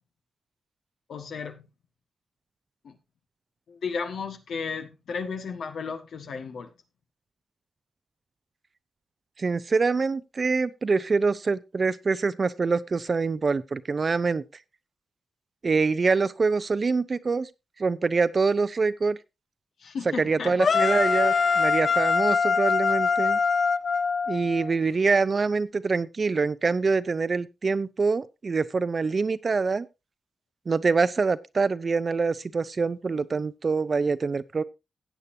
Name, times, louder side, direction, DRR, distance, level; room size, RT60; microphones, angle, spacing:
voice 1, 1.1-1.7 2.8-2.9 3.7-6.7 19.8-20.5, left 5 dB, 85° left, 1.4 m, -34 dB
voice 2, 9.4-14.4 15.6-17.5 17.8-19.2 20.2-23.4 24.3-29.9 30.7-34.6, right 4 dB, 45° right, 0.5 m, -25 dB
sound 1, 20.6-24.7, left 5 dB, 55° left, 0.6 m, -23 dB
16.0 x 8.3 x 2.7 m
cardioid pair, 95°, 0 cm